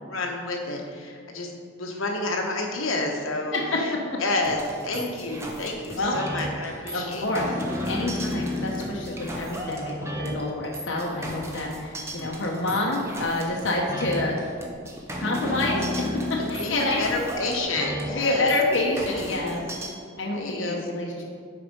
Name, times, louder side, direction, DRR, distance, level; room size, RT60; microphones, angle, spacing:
voice 1, 0.0-1.5 1.8-3.9 4.2-7.5 16.4-18.6 19.0-19.5 20.3-20.8, left 2 dB, 90° left, 1 dB, 1.1 m, -30 dB
voice 2, 3.5-3.8 6.0-6.2 6.9-7.5 7.8-14.4 15.2-17.0 18.1-19.6 20.2-21.2, left 2 dB, 65° left, -2 dB, 0.9 m, -27 dB
sound 1, 4.4-19.9, left 1 dB, 15° right, 0.8 m, -33 dB
8.0 x 5.0 x 5.3 m, 2.1 s
head